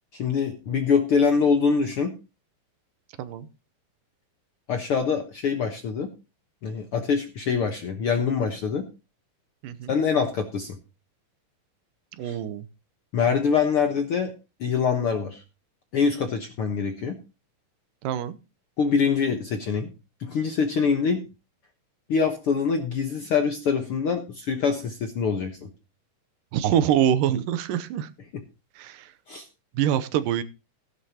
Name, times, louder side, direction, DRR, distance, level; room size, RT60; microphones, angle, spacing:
voice 1, 0.1-2.1 4.7-6.1 6.6-8.8 9.9-10.8 12.2-12.4 13.1-14.3 14.6-15.4 15.9-17.1 18.8-19.9 20.2-21.2 22.1-25.7 29.3-29.4, left 6 dB, 60° left, 5 dB, 1.6 m, -24 dB
voice 2, 9.6-9.9 12.2-12.7 18.0-18.4 26.5-28.1 28.8-29.1 29.7-30.4, right 10 dB, 85° right, 13 dB, 2.5 m, -25 dB
15.5 x 11.0 x 2.9 m, 0.29 s
omnidirectional pair, 3.8 m